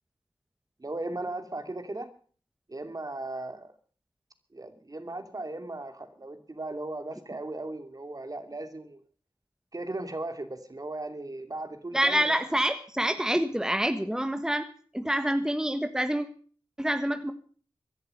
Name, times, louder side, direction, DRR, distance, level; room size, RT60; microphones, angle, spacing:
voice 1, 0.8-2.1 2.7-3.7 4.5-9.0 9.7-12.4, right 2 dB, 40° right, 8 dB, 2.7 m, -37 dB
voice 2, 11.9-14.7 14.9-16.3 16.8-17.3, right 1 dB, 5° right, 8 dB, 1.4 m, -27 dB
16.5 x 11.0 x 6.6 m, 0.43 s
cardioid pair, 45°, 9 cm